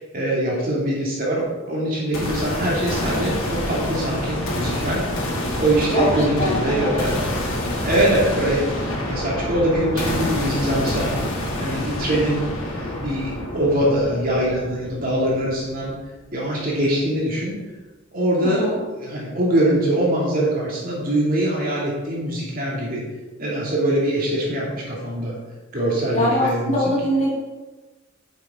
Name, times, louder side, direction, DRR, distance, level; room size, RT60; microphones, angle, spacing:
voice 1, 0.0-5.0 5.6-7.2 7.8-8.6 9.1-11.2 11.6-15.9 16.3-17.6 18.1-23.0 23.4-25.4 25.7-26.9, right 1 dB, 40° right, -5 dB, 2.7 m, -23 dB
sound 1, 2.1-16.1, left 1 dB, 70° left, 2.6 m, -27 dB
voice 2, 5.9-7.0 18.4-18.8 26.1-27.3, left 1 dB, 30° left, -5 dB, 3.0 m, -22 dB
10.0 x 7.3 x 3.8 m, 1.2 s
head